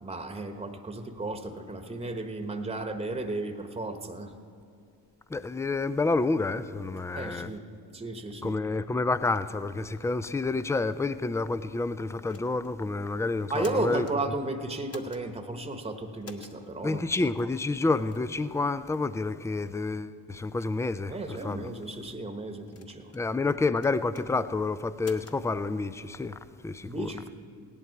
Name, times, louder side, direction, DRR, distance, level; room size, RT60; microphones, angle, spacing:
voice 1, 0.0-4.3 7.2-7.6 7.9-8.6 13.5-17.1 21.1-23.1 26.8-27.3, right 2 dB, 15° right, 1.1 m, -34 dB
voice 2, 5.3-7.5 8.4-14.1 16.8-21.7 23.1-27.1, left 3 dB, 5° left, 0.3 m, -29 dB
sound 1, 12.3-12.7 13.4-14.2 14.9-15.2 16.2-16.6 17.4-17.5 18.1-18.3 18.9-19.1 19.7-19.8 20.4-20.7 21.5-21.9 22.7-23.3 23.8-24.3 25.0-25.4, left 4 dB, 30° left, 1.3 m, -48 dB
17.0 x 11.0 x 4.6 m
hypercardioid pair, 55°, 46 cm